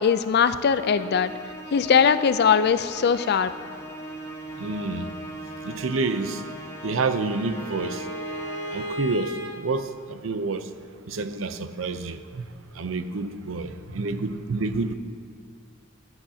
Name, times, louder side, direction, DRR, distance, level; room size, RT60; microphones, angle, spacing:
voice 1, 0.0-1.3 1.7-3.5, left 6 dB, 55° left, 12 dB, 0.4 m, -20 dB
Musical instrument, 0.8-9.2, right 1 dB, 15° left, 0.8 m, -39 dB
voice 2, 4.6-5.1 5.6-6.4 6.8-8.1 8.7-10.7 11.1-12.5 12.7-14.9, right 3 dB, 85° right, 10 dB, 0.6 m, -28 dB
Bowed string instrument, 6.4-9.5, equal, 25° right, 1.3 m, -36 dB
16.0 x 11.0 x 2.8 m, 2.2 s
head